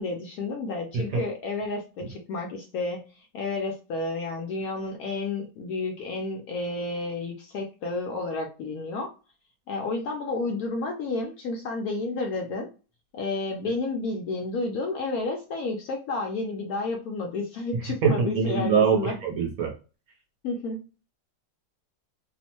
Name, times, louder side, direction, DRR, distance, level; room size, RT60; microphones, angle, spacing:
voice 1, 0.0-9.1 9.7-12.7 13.1-19.1 20.4-20.8, left 3 dB, 70° left, 2 dB, 0.9 m, -31 dB
voice 2, 18.0-19.7, right 6 dB, 65° right, 1 dB, 1.0 m, -23 dB
2.9 x 2.1 x 2.9 m, 0.33 s
omnidirectional pair, 1.9 m